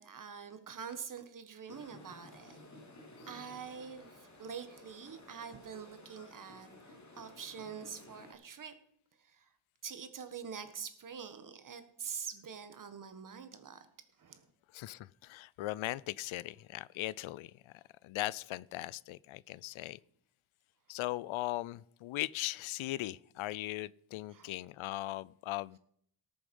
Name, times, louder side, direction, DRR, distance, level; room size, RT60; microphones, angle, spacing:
voice 1, 0.0-2.6 3.2-8.7 9.2-9.5 9.8-13.9 14.2-14.5 24.3-24.5, right 7 dB, 40° right, 1.5 m, -45 dB
sound 1, 1.7-8.3, left 1 dB, 35° left, 2.6 m, -55 dB
voice 2, 14.7-20.0 20.9-25.8, left 16 dB, 80° left, 0.5 m, -39 dB
18.0 x 7.1 x 5.4 m
cardioid pair, 140°, 47 cm